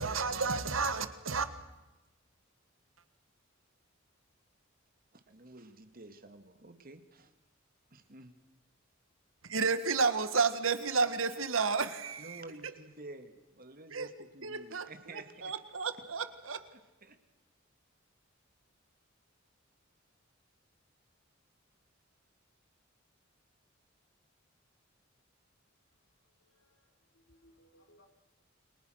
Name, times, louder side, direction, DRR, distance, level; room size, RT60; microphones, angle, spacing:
voice 1, 0.0-1.5 9.5-12.7 13.9-14.1 14.4-14.9 15.4-16.6, right 4 dB, 75° right, 1.7 m, -31 dB
voice 2, 5.3-7.3 7.9-8.3 12.2-15.5 17.0-17.2, right 2 dB, 45° right, 2.2 m, -50 dB
voice 3, 26.4-28.1, equal, 65° left, 4.4 m, -65 dB
29.5 x 23.5 x 6.5 m
head